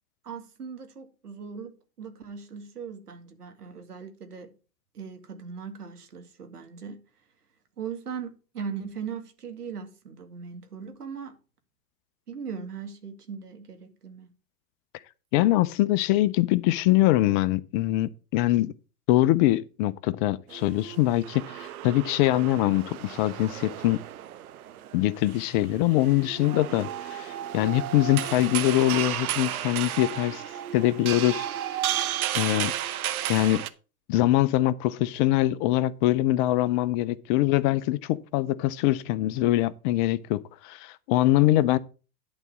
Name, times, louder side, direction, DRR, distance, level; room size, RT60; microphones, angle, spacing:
voice 1, 0.2-4.5 4.9-7.0 7.8-11.3 12.3-14.3, right 6 dB, 90° right, 2.2 m, -39 dB
voice 2, 15.3-18.7 19.1-24.0 24.9-30.4 30.7-31.5 32.3-32.7 33.3-33.6 34.1-41.8, left 15 dB, 35° left, 0.5 m, -23 dB
sound 1, 20.5-33.7, right 11 dB, 70° right, 1.0 m, -33 dB
11.0 x 4.0 x 7.2 m
hypercardioid pair, 110°, 45 cm